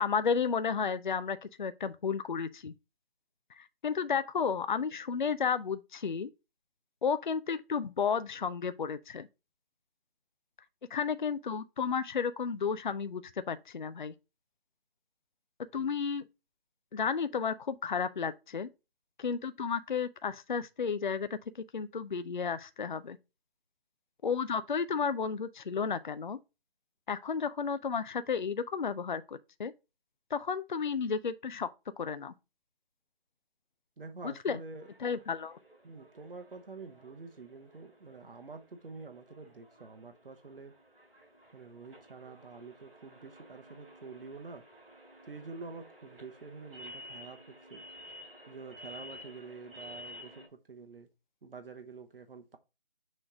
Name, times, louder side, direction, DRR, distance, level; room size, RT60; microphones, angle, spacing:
voice 1, 0.0-2.7 3.6-6.3 7.0-9.3 10.9-13.2 13.5-14.1 15.7-16.2 16.9-18.7 19.2-21.3 21.7-23.2 24.2-26.4 27.1-29.7 30.3-31.7 32.0-32.3 34.4-34.6 35.0-35.6, left 6 dB, 55° left, 0.4 m, -32 dB
voice 2, 34.0-34.9 35.8-40.7 41.5-44.6 45.3-47.4 47.7-47.8 48.5-51.1 51.4-52.6, right 4 dB, 65° right, 1.0 m, -47 dB
sound 1, 34.8-50.5, equal, 10° right, 2.4 m, -52 dB
6.4 x 3.2 x 4.7 m
figure-of-eight pair, 160°, 30 cm